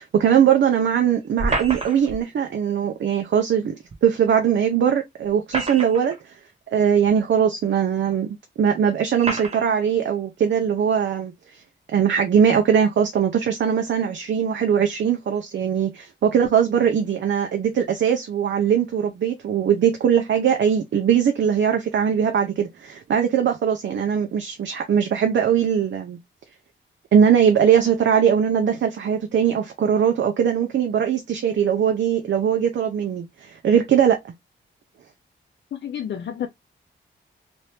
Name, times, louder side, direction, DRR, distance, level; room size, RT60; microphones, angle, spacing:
voice 1, 0.0-3.7 4.0-6.3 6.7-8.3 8.6-11.6 11.9-26.2 27.1-34.3, right 8 dB, 65° right, 0.6 m, -20 dB
sound 1, 1.4-2.2 3.9-4.0 5.2-6.2 7.0-7.1 8.1-8.2 9.2-9.7, right 2 dB, 30° right, 1.0 m, -28 dB
voice 2, 35.7-36.5, left 9 dB, 60° left, 0.5 m, -30 dB
2.9 x 2.7 x 3.3 m
wide cardioid pair, 135°, 20 cm